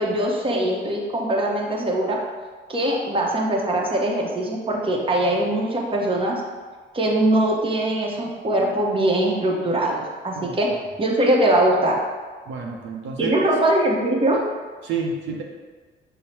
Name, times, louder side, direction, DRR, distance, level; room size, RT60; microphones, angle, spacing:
voice 1, 0.0-2.2 2.7-6.4 6.9-10.7 11.0-12.0 13.2-14.4, right 1 dB, 25° right, -1 dB, 0.8 m, -22 dB
voice 2, 12.5-13.4 14.8-15.4, right 4 dB, 75° right, 0 dB, 0.6 m, -29 dB
5.5 x 2.1 x 4.3 m, 1.5 s
cardioid pair, 90°, 20 cm